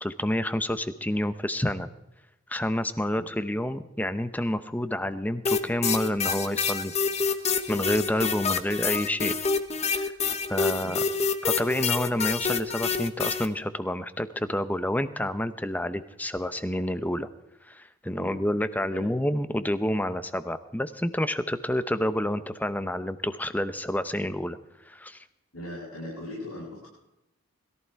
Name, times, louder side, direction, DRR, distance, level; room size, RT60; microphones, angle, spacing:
voice 1, 0.0-1.9 2.5-6.9 7.7-9.3 9.9-10.0 10.5-11.0 11.4-17.3 17.6-24.6 24.9-25.2, left 1 dB, 5° left, 12 dB, 0.7 m, -29 dB
sound 1, 5.5-13.5, left 5 dB, 30° left, 0.9 m, -27 dB
voice 2, 25.5-26.9, left 1 dB, 85° left, -6 dB, 7.6 m, -39 dB
21.5 x 14.0 x 4.7 m, 0.90 s
head